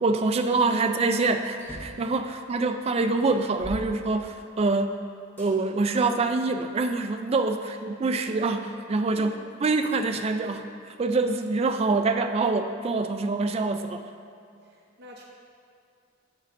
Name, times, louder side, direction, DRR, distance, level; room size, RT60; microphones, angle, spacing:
voice 1, 0.0-5.0 5.4-9.3 9.6-14.0, right 3 dB, 30° right, 7 dB, 0.3 m, -25 dB
sound 1, 1.6-2.1 2.7-2.8 3.3-4.7 5.4-5.5 6.2-7.3, equal, 10° left, 1.6 m, -42 dB
voice 2, 14.6-15.2, right 1 dB, 55° right, -1 dB, 0.7 m, -47 dB
12.0 x 5.3 x 2.6 m, 2.4 s
head